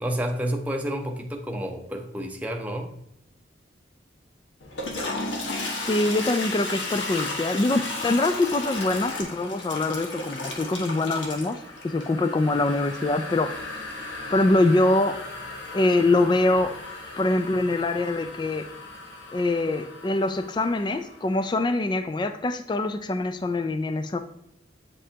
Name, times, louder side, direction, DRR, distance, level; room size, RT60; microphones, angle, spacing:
voice 1, 0.0-2.9, equal, 10° right, 3 dB, 0.6 m, -30 dB
Toilet flush, 4.6-21.4, left 2 dB, 85° left, 1.4 m, -35 dB
voice 2, 5.9-13.6 14.3-15.2 15.7-16.8 17.2-18.7 19.3-24.2, left 2 dB, 25° left, 9 dB, 0.3 m, -24 dB
8.4 x 5.3 x 2.8 m, 0.78 s
head